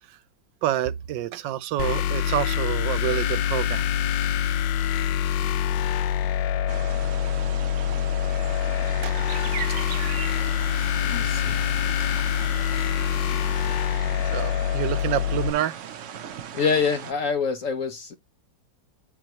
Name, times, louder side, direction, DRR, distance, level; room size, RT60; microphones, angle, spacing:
voice 1, 0.6-3.9 9.0-9.1 14.3-15.8, right 12 dB, 85° right, 1.3 m, -27 dB
sound 1, 1.8-15.5, left 10 dB, 80° left, 1.3 m, -25 dB
sound 2, 6.7-17.1, right 8 dB, 60° right, 0.8 m, -38 dB
voice 2, 11.0-11.6 16.5-18.2, left 5 dB, 60° left, 0.9 m, -26 dB
9.0 x 4.5 x 2.9 m
omnidirectional pair, 2.0 m